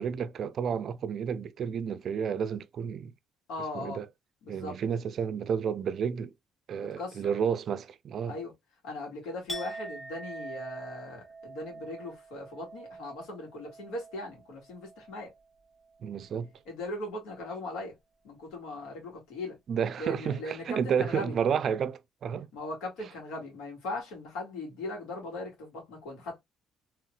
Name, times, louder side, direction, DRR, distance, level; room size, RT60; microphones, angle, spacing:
voice 1, 0.0-3.1 3.7-4.1 4.5-6.3 6.7-8.4 16.0-16.5 19.7-22.5, right 7 dB, 60° right, 0.4 m, -31 dB
voice 2, 3.5-4.0 4.4-4.8 6.8-7.3 8.3-8.5 8.8-15.3 16.7-18.0 18.2-19.6 20.0-21.4 22.5-26.4, left 2 dB, 90° left, 1.8 m, -39 dB
Chink clink, 9.5-15.4 15.7-16.1, right 2 dB, 10° left, 1.2 m, -44 dB
3.2 x 3.0 x 2.2 m
cardioid pair, 95°, 0 cm